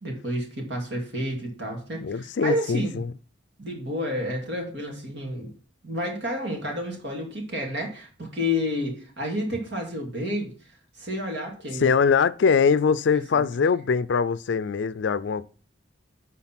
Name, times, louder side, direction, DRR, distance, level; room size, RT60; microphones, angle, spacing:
voice 1, 0.0-3.0 3.6-5.5 5.8-10.5 11.0-11.9 13.3-13.4, left 1 dB, 65° right, 2.3 m, -30 dB
voice 2, 2.0-3.1 11.7-15.5, left 5 dB, 70° left, 0.4 m, -22 dB
10.0 x 4.1 x 5.9 m
head